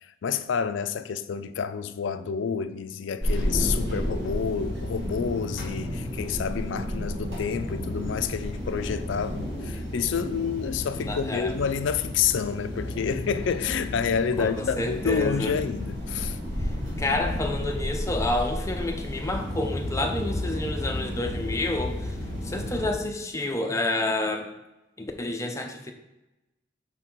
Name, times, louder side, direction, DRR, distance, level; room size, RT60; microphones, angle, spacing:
voice 1, 0.2-16.4, left 6 dB, 70° left, 0.4 m, -29 dB
sound 1, 3.2-22.9, left 1 dB, 65° right, 2.4 m, -32 dB
voice 2, 11.0-11.6 14.4-15.5 16.6-16.7 17.0-22.2 22.4-24.5 25.0-25.9, left 2 dB, 15° left, 0.6 m, -29 dB
5.9 x 4.1 x 4.4 m
head